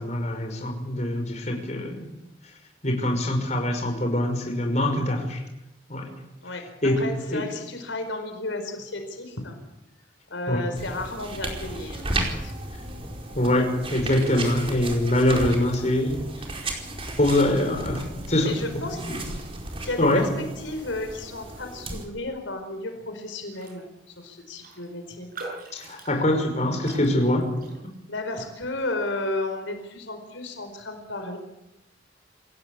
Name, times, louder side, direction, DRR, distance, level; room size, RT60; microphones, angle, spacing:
voice 1, 0.0-2.1 2.8-5.4 5.9-6.1 6.8-7.0 7.3-7.4 10.5-10.6 13.3-16.3 17.2-18.5 18.9-19.2 20.0-20.2 25.7-27.5, left 1 dB, 35° left, 3 dB, 5.7 m, -24 dB
voice 2, 6.9-9.6 10.3-12.0 12.3-12.5 18.4-19.0 19.8-25.3 25.8-26.1 28.1-31.4, left 2 dB, 85° left, 6 dB, 4.7 m, -33 dB
sound 1, 10.8-22.1, right 2 dB, 30° right, 4.6 m, -34 dB
Raindrop, 23.5-23.8 24.1-24.2 24.6-28.2 28.6-28.9, right 3 dB, 50° right, 7.3 m, -43 dB
28.0 x 16.5 x 8.7 m, 0.90 s
head